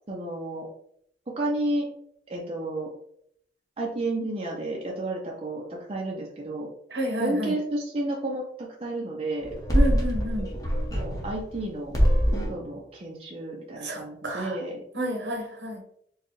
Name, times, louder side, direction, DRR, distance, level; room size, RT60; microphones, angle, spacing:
voice 1, 0.1-0.7 1.4-1.9 2.3-2.9 3.8-6.7 7.2-9.5 10.9-12.0 12.5-14.8, right 1 dB, 30° right, -2 dB, 0.6 m, -31 dB
voice 2, 6.9-7.5 9.7-10.5 13.8-14.6 14.9-15.8, equal, 70° right, 1 dB, 1.1 m, -30 dB
sound 1, 9.4-11.6 11.9-12.6, equal, 20° left, 0.8 m, -24 dB
4.5 x 2.2 x 3.1 m, 0.69 s
head